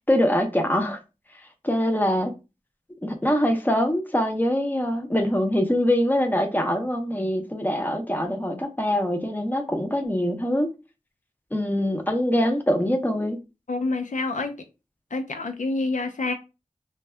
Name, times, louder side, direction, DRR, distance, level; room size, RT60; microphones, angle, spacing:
voice 1, 0.1-1.0 1.6-2.3 3.0-10.7 11.5-13.4, equal, 15° left, 0.6 m, -23 dB
voice 2, 13.7-14.5 15.1-16.3, left 3 dB, 75° left, 0.4 m, -27 dB
2.6 x 2.3 x 3.2 m
wide cardioid pair, 50°, 13 cm